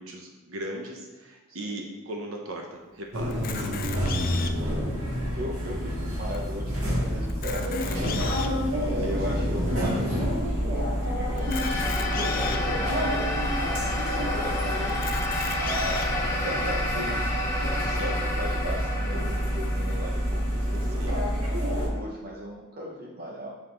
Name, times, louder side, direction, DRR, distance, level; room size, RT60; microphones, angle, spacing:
voice 1, 0.0-3.4 5.6-6.0 8.8-9.4 14.0-14.4 17.8-18.2 20.9-21.2, right 1 dB, 70° right, 1 dB, 0.8 m, -39 dB
sound 1, 3.1-21.9, equal, 90° right, 1.9 m, -28 dB
Camera, 3.3-4.7 5.4-5.5 5.7-5.8 6.3-6.4 7.2-8.6 9.3-9.4 11.4-12.6 13.3-13.4 13.7-13.8 14.9-16.1, left 7 dB, 45° left, 0.4 m, -36 dB
voice 2, 4.1-5.0 5.3-7.9 8.8-13.2 14.0-15.1 15.6-17.4 17.9-21.1 21.7-23.6, equal, 45° right, -3 dB, 0.7 m, -37 dB
sound 2, 11.4-21.9, left 1 dB, 15° left, 0.9 m, -31 dB
7.5 x 4.2 x 3.8 m, 1.2 s
head